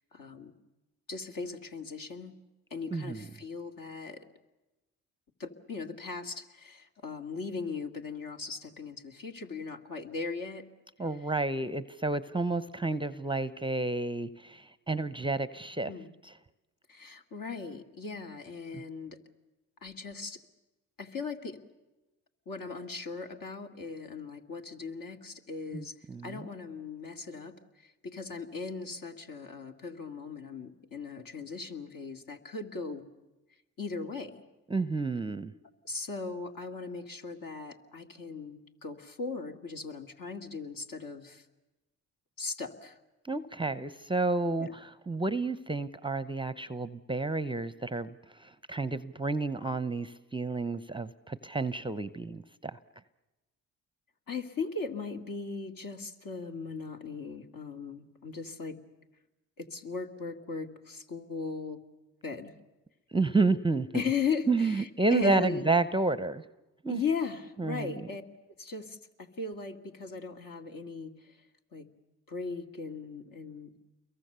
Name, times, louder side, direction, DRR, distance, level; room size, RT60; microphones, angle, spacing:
voice 1, 0.1-0.5 1.1-2.3 2.7-4.2 5.4-10.6 15.9-16.1 16.9-19.2 19.8-20.4 21.0-21.6 22.5-25.9 26.2-27.5 28.0-33.1 33.8-34.4 35.8-41.4 42.4-43.0 44.6-44.7 54.3-58.8 59.6-61.8 62.2-62.5 63.9-65.6 66.9-68.2 68.6-69.0 69.4-71.1 71.7-71.9 72.3-73.7, left 5 dB, 55° left, 4 dB, 2.3 m, -38 dB
voice 2, 2.9-3.3 11.0-15.9 16.2-16.3 18.7-18.8 25.7-26.5 34.7-35.5 43.2-48.1 48.4-52.8 63.1-64.0 64.5-66.4 66.8-67.0 67.6-68.1, right 3 dB, 10° right, 14 dB, 0.7 m, -30 dB
29.0 x 22.5 x 6.9 m, 1.1 s
hypercardioid pair, 55°, 41 cm